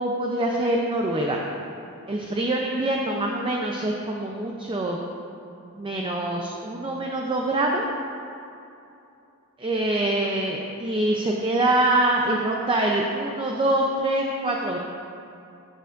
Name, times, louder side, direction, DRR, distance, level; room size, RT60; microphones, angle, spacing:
voice 1, 0.0-1.4 2.1-5.0 5.7-7.8 9.6-14.8, right 1 dB, 25° right, 0 dB, 0.5 m, -24 dB
14.5 x 6.8 x 2.5 m, 2.7 s
head